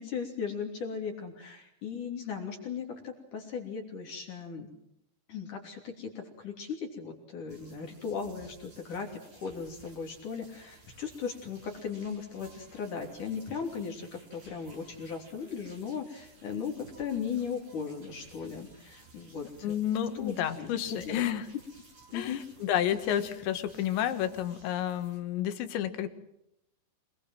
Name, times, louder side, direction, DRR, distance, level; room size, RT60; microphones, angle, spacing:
voice 1, 0.0-4.7 5.3-19.8 20.1-21.2 22.1-22.4, left 6 dB, 50° left, 2 dB, 4.3 m, -37 dB
sound 1, 7.5-25.2, right 2 dB, 40° right, 7.7 m, -56 dB
voice 2, 19.6-21.4 22.1-26.1, left 10 dB, 80° left, 9 dB, 3.9 m, -30 dB
26.5 x 21.5 x 7.7 m, 0.81 s
omnidirectional pair, 5.1 m